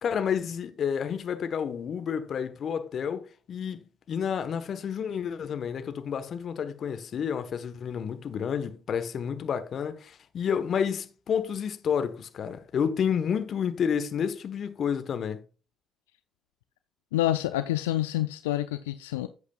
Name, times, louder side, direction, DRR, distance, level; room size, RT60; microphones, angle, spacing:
voice 1, 0.0-3.8 4.1-15.4, left 7 dB, 55° left, 1.0 m, -30 dB
voice 2, 17.1-19.3, left 14 dB, 80° left, 0.3 m, -27 dB
10.5 x 8.1 x 2.3 m
hypercardioid pair, 50°, 0 cm